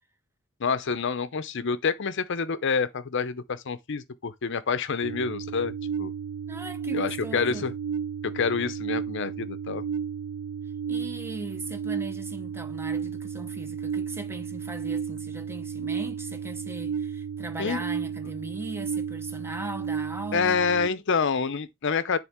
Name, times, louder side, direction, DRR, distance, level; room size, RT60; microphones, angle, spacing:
voice 1, 0.6-6.1 6.9-7.7 8.2-9.8 17.6-17.8 20.3-22.2, left 5 dB, 55° left, 0.6 m, -27 dB
sound 1, 5.0-20.9, right 7 dB, 85° right, 0.4 m, -33 dB
voice 2, 6.5-7.7 10.9-20.6, right 2 dB, 10° right, 0.7 m, -38 dB
9.8 x 3.8 x 3.6 m
head